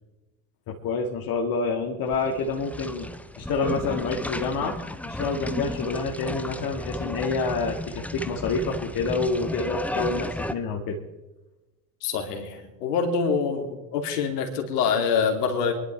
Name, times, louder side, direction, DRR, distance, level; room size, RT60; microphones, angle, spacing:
voice 1, 0.7-3.1 3.3-4.8 5.0-11.0, left 4 dB, 45° left, 1 dB, 1.9 m, -28 dB
sound 1, 2.1-10.5, left 1 dB, 5° left, 0.6 m, -34 dB
voice 2, 12.0-15.7, left 6 dB, 70° left, 4 dB, 2.8 m, -25 dB
24.5 x 11.0 x 3.4 m, 1.1 s
hypercardioid pair, 80°, 49 cm